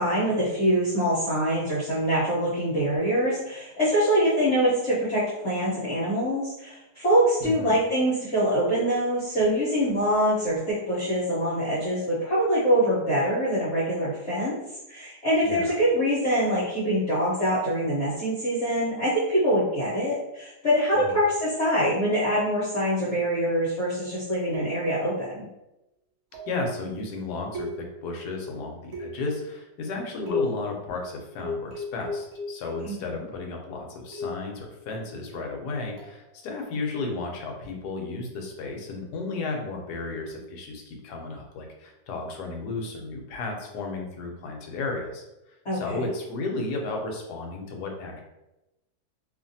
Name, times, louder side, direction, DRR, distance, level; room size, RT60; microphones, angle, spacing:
voice 1, 0.0-14.6 14.9-25.4 32.8-33.2 45.6-46.0, equal, 50° left, -10 dB, 1.0 m, -24 dB
voice 2, 7.4-7.7 15.4-15.7 20.9-21.1 26.4-45.2 45.7-48.2, left 3 dB, 75° left, 1 dB, 1.1 m, -33 dB
sound 1, 24.5-25.1 26.3-26.7 27.5-28.2 28.9-29.4 30.3-30.7 31.4-33.0 34.1-34.5 36.0-36.2, left 3 dB, 60° right, 0.9 m, -34 dB
2.8 x 2.5 x 2.6 m, 0.95 s
omnidirectional pair, 1.9 m